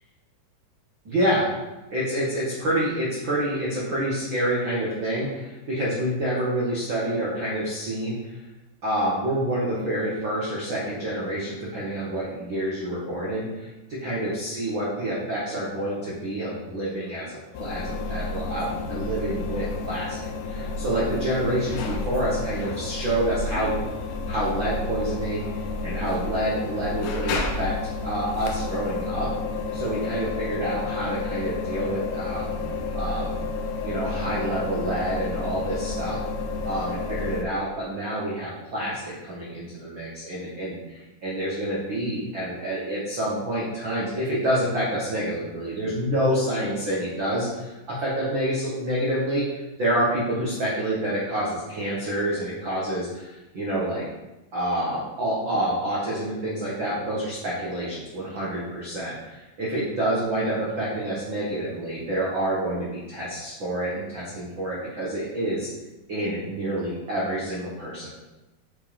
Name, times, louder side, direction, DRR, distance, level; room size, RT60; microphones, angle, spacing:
voice 1, 1.0-1.5 1.9-8.4 8.8-23.8 24.3-25.5 25.8-27.7 28.0-29.3 29.7-33.3 33.8-36.2 36.6-54.1 54.5-65.7 66.1-68.1, right 1 dB, 85° right, -6 dB, 1.0 m, -28 dB
sound 1, 17.5-37.5, left 3 dB, 85° left, 1.9 m, -31 dB
8.4 x 6.2 x 3.5 m, 1.0 s
omnidirectional pair, 5.0 m